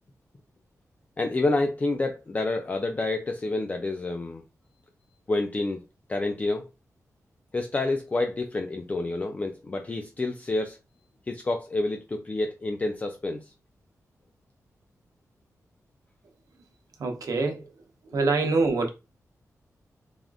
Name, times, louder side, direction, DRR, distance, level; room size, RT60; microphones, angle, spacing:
voice 1, 1.2-4.4 5.3-5.8 6.1-6.7 7.5-10.8 11.3-13.5, left 2 dB, 25° left, 0.4 m, -28 dB
voice 2, 17.0-17.7 18.0-18.9, right 3 dB, 75° right, 0.7 m, -25 dB
3.4 x 2.4 x 2.3 m
wide cardioid pair, 115°, 6 cm